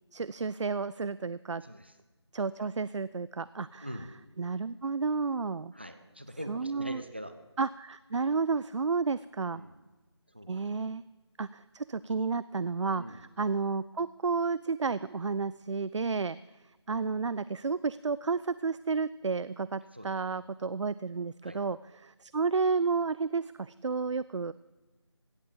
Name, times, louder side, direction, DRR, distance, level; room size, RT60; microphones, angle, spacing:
voice 1, 0.1-1.6 2.3-3.9 4.4-5.7 6.5-7.0 7.6-9.6 10.5-11.0 11.4-16.4 16.9-24.5, right 4 dB, 90° right, 17 dB, 0.4 m, -31 dB
voice 2, 1.6-1.9 3.8-4.1 5.7-7.3 9.5-9.8 10.3-10.6 13.0-13.2 19.9-20.4 21.4-21.6, equal, 25° right, 8 dB, 0.6 m, -43 dB
16.5 x 7.9 x 7.0 m, 1.1 s
figure-of-eight pair, 180°, 15 cm